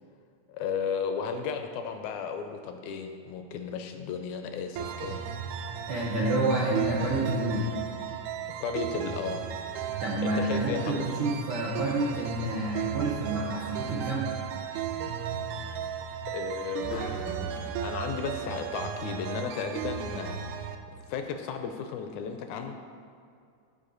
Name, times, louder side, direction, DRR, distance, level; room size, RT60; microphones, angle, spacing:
voice 1, 0.5-5.2 8.6-9.5 10.2-11.1 16.3-20.4 21.1-22.7, left 6 dB, 80° left, 6 dB, 1.9 m, -34 dB
sound 1, 4.8-20.8, right 7 dB, 85° right, 2.1 m, -35 dB
voice 2, 5.9-7.7 9.9-14.3, right 2 dB, 65° right, -4 dB, 1.4 m, -29 dB
sound 2, 16.8-17.7, left 2 dB, 55° left, 1.3 m, -41 dB
14.0 x 5.3 x 3.9 m, 2.4 s
omnidirectional pair, 3.6 m